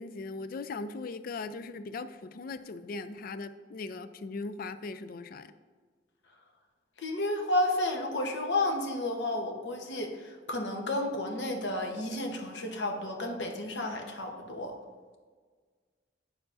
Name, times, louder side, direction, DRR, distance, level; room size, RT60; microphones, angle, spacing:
voice 1, 0.0-5.5, left 3 dB, 50° left, 12 dB, 0.4 m, -39 dB
voice 2, 7.0-14.7, left 1 dB, 70° left, 2 dB, 1.0 m, -31 dB
8.8 x 7.0 x 2.6 m, 1.5 s
head